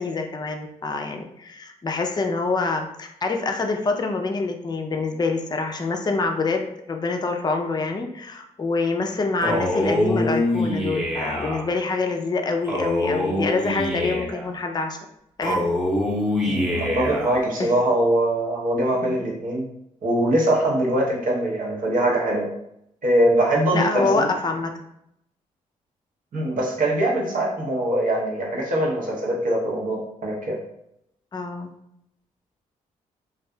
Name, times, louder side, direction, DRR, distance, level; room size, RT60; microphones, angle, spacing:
voice 1, 0.0-15.0 15.4-15.6 17.6-17.7 19.0-19.3 23.7-24.7 31.3-31.7, left 3 dB, 25° left, 4 dB, 0.4 m, -26 dB
Male speech man speaking, 9.4-11.6 12.7-14.5 15.4-17.4, left 1 dB, ahead, 0.8 m, -24 dB
voice 2, 16.5-19.7 20.0-22.5 23.0-24.3 26.3-30.6, right 1 dB, 60° right, -3 dB, 0.9 m, -22 dB
2.6 x 2.4 x 2.2 m, 0.76 s
hypercardioid pair, 45°, 16 cm